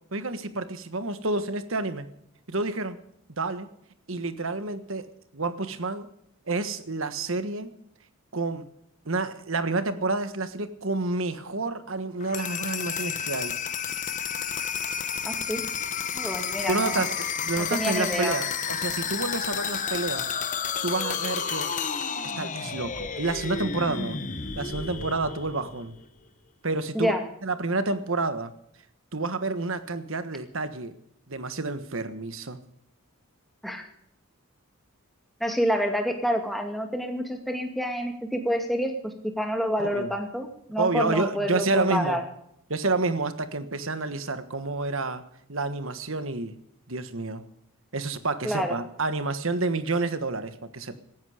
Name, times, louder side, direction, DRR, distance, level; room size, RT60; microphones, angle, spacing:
voice 1, 0.1-2.1 2.5-3.0 3.4-3.7 4.1-5.0 5.3-6.1 6.5-7.7 8.3-8.7 9.0-13.5 16.7-20.4 20.8-21.7 22.4-24.2 24.6-25.9 26.6-27.1 27.4-28.5 29.1-31.0 31.3-32.6 39.8-40.1 40.8-42.2 42.7-45.2 45.5-46.5 46.9-47.4 47.9-51.0, right 3 dB, 60° right, 11 dB, 1.4 m, -29 dB
sound 1, 12.2-26.0, left 7 dB, 35° left, 1.1 m, -31 dB
voice 2, 15.2-15.6 16.1-17.1 17.6-18.4 26.9-27.2 33.6-33.9 35.4-42.2 48.4-48.8, equal, ahead, 4 dB, 2.2 m, -28 dB
18.0 x 13.5 x 5.0 m, 0.73 s
head